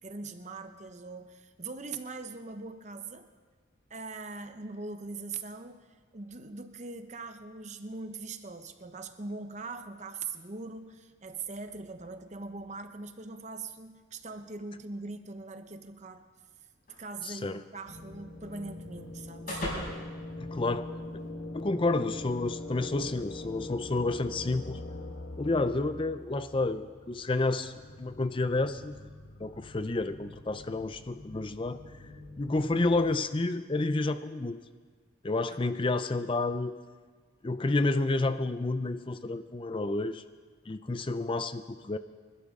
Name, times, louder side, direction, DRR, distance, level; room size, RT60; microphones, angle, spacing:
voice 1, 0.0-3.3 3.9-16.2 17.0-19.9 35.5-35.6, right 3 dB, 35° right, 8 dB, 0.8 m, -41 dB
sound 1, 16.9-21.3, left 1 dB, 45° left, 5.4 m, -42 dB
voice 2, 17.2-17.6 20.4-20.9 21.5-24.8 25.4-29.1 29.4-31.8 32.4-34.6 35.2-36.7 37.4-40.2 40.7-42.0, left 2 dB, 25° left, 11 dB, 0.4 m, -30 dB
sound 2, 17.9-33.2, left 2 dB, 75° left, 1.6 m, -43 dB
26.0 x 12.0 x 3.7 m, 1.5 s
head